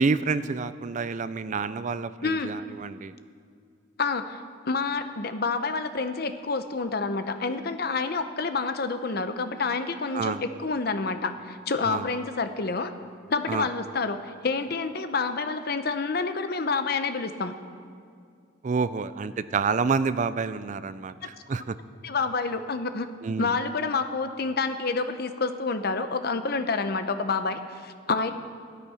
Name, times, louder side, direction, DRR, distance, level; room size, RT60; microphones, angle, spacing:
voice 1, 0.0-3.1 10.1-10.4 11.8-12.1 13.5-13.7 18.6-21.8 23.2-23.5, right 4 dB, 40° right, 14 dB, 0.4 m, -28 dB
voice 2, 2.2-2.5 4.0-12.9 13.3-17.5 21.2-21.3 22.0-23.1 23.4-28.3, left 4 dB, 55° left, 9 dB, 0.8 m, -28 dB
15.0 x 12.5 x 5.7 m, 2.3 s
head